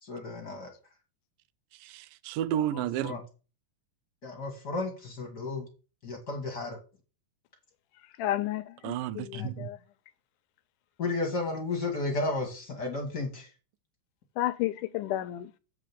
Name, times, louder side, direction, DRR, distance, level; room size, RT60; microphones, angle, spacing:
voice 1, 0.0-0.7 2.7-3.2 4.2-5.6 6.0-6.8 9.3-9.5 11.0-13.5, left 3 dB, 45° left, 1.5 m, -33 dB
voice 2, 1.7-3.1 8.8-9.7, right 11 dB, 85° right, 2.2 m, -32 dB
voice 3, 8.2-9.8 14.4-15.5, left 14 dB, 80° left, 2.1 m, -32 dB
7.7 x 5.0 x 7.0 m
omnidirectional pair, 3.8 m